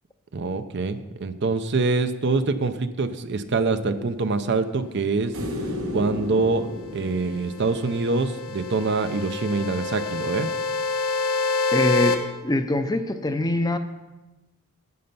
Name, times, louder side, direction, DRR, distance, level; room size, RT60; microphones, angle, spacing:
voice 1, 0.3-5.3 5.9-10.5, right 3 dB, 50° right, 10 dB, 0.6 m, -25 dB
sound 1, 5.3-8.6 11.2-11.3, left 1 dB, 75° right, 1.3 m, -33 dB
sound 2, 7.2-12.2, left 4 dB, 85° left, 1.1 m, -27 dB
voice 2, 11.7-13.8, left 1 dB, 15° left, 8 dB, 0.5 m, -24 dB
9.4 x 7.8 x 5.4 m, 1.1 s
head